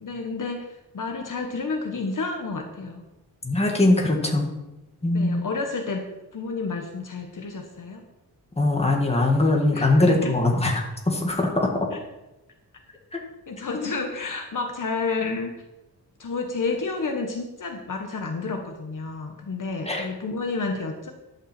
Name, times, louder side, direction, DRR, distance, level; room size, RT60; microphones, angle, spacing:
voice 1, 0.0-3.0 5.1-8.0 9.7-10.3 11.9-12.0 13.5-15.5 16.2-21.1, left 4 dB, 55° left, 4 dB, 1.3 m, -30 dB
voice 2, 3.4-4.5 5.0-5.5 8.6-11.9 13.1-13.2 13.7-13.8 19.9-20.1, left 2 dB, 15° left, 0 dB, 1.8 m, -21 dB
11.5 x 5.8 x 7.6 m, 0.99 s
wide cardioid pair, 175°, 38 cm